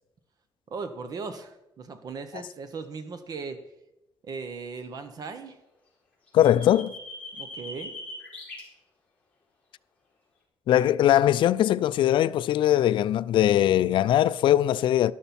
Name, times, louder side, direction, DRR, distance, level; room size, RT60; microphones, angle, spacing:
voice 1, 0.7-3.6 4.2-5.6 7.3-7.9, right 4 dB, 45° right, 1.0 m, -38 dB
voice 2, 6.3-7.0 10.7-15.1, left 12 dB, 65° left, 0.4 m, -21 dB
sound 1, 6.3-8.6, left 2 dB, 15° left, 4.3 m, -40 dB
12.5 x 12.0 x 4.3 m
cardioid pair, 175°, 9 cm